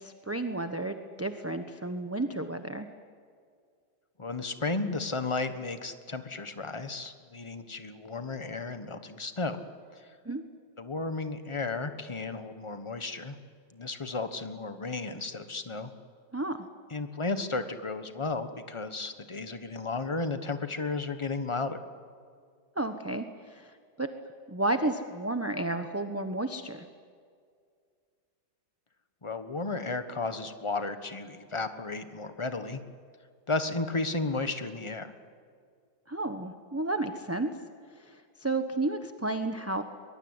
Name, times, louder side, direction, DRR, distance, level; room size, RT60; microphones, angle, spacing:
voice 1, 0.0-2.9 10.2-10.4 16.3-16.6 22.8-23.7 24.0-24.1 24.5-26.8 36.1-37.5 38.1-39.8, right 2 dB, 10° right, 7 dB, 0.7 m, -32 dB
voice 2, 4.2-9.6 9.9-10.1 10.8-13.4 13.7-15.9 16.9-21.8 29.2-32.8 33.5-35.1, left 3 dB, 20° left, 9 dB, 1.1 m, -33 dB
22.5 x 22.0 x 9.7 m, 2.2 s
omnidirectional pair, 1.9 m